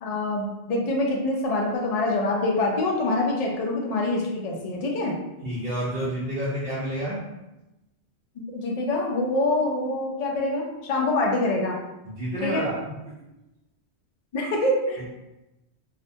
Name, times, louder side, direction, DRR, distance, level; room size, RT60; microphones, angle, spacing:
voice 1, 0.0-5.1 8.5-11.8 12.4-12.6 14.3-15.1, left 2 dB, 60° left, 0 dB, 0.4 m, -25 dB
voice 2, 5.4-7.2 12.1-12.9, right 1 dB, 55° right, -7 dB, 0.6 m, -29 dB
2.4 x 2.1 x 2.6 m, 0.96 s
omnidirectional pair, 1.1 m